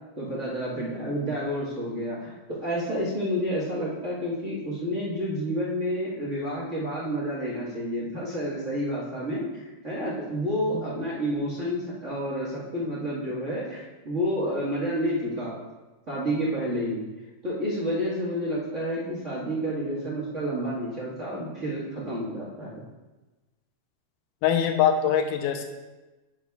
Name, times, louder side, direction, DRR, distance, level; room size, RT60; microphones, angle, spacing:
voice 1, 0.2-15.6 16.1-17.0 17.4-22.8, equal, 35° right, -7 dB, 1.2 m, -30 dB
voice 2, 24.4-25.6, left 8 dB, 90° left, 5 dB, 2.3 m, -23 dB
10.0 x 7.5 x 2.4 m, 1.2 s
omnidirectional pair, 3.6 m